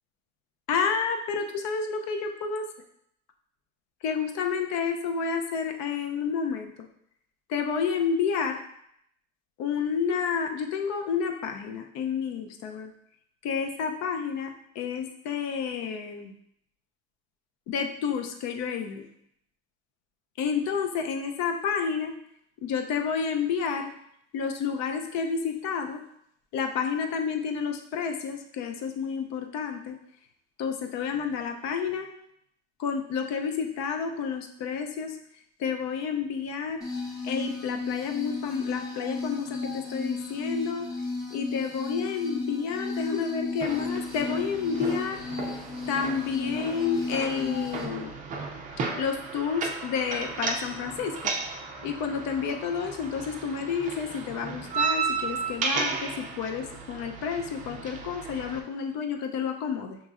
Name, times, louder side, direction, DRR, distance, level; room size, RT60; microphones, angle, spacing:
voice 1, 0.7-2.7 4.0-6.7 7.5-8.6 9.6-12.9 13.4-16.3 17.7-19.1 20.4-22.1 22.6-23.9 24.3-26.0 26.5-29.9 30.6-32.1 32.8-35.2 35.6-36.8 37.2-40.9 41.3-45.2 45.9-48.1 49.0-51.3 51.8-60.0, left 6 dB, 65° left, 5 dB, 0.6 m, -30 dB
sound 1, 36.8-47.8, left 3 dB, 10° left, 0.6 m, -34 dB
Gate closing walk towards me, 43.6-58.6, right 5 dB, 25° right, 0.4 m, -34 dB
6.3 x 3.0 x 2.5 m, 0.73 s
cardioid pair, 180°, 30 cm